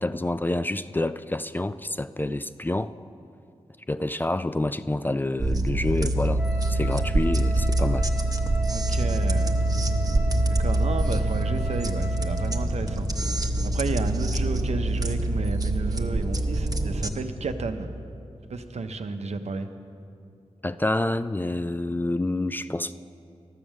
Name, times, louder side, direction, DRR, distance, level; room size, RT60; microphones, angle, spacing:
voice 1, 0.0-2.9 3.9-6.4 6.7-8.1 11.1-11.2 20.6-22.9, left 2 dB, 15° left, 12 dB, 0.3 m, -28 dB
sound 1, 5.4-17.1, right 1 dB, 30° right, 0.9 m, -25 dB
Wind instrument woodwind instrument, 6.4-12.8, left 1 dB, 10° right, 1.7 m, -38 dB
voice 2, 8.7-9.5 10.6-13.1 13.7-17.9 18.5-19.7, right 4 dB, 70° right, 7 dB, 0.7 m, -32 dB
13.0 x 7.1 x 6.2 m, 2.6 s
cardioid pair, 40°, 12 cm